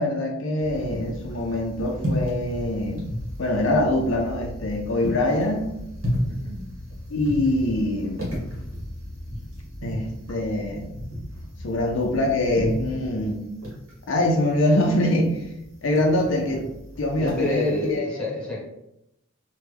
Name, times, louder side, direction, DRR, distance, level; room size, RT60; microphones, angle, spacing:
voice 1, 0.0-3.0 3.4-5.7 7.1-8.2 9.8-10.9 11.6-13.4 14.1-15.4 15.8-16.7 17.0-18.2, left 1 dB, 70° left, 1 dB, 0.5 m, -24 dB
sound 1, 0.6-18.0, equal, 70° right, 1.1 m, -34 dB
voice 2, 6.2-6.8 17.2-18.6, left 2 dB, 5° left, -6 dB, 1.1 m, -28 dB
3.2 x 2.2 x 3.3 m, 0.84 s
head